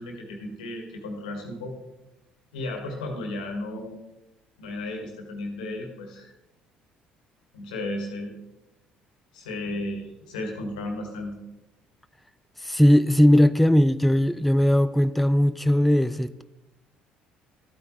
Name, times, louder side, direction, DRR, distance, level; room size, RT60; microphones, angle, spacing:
voice 1, 0.0-1.7 2.5-4.0 4.6-6.3 7.5-8.3 9.3-11.4, left 1 dB, 80° left, 1.7 m, -34 dB
voice 2, 12.6-16.4, equal, ahead, 0.4 m, -19 dB
13.0 x 9.0 x 3.1 m
hypercardioid pair, 55°, 4 cm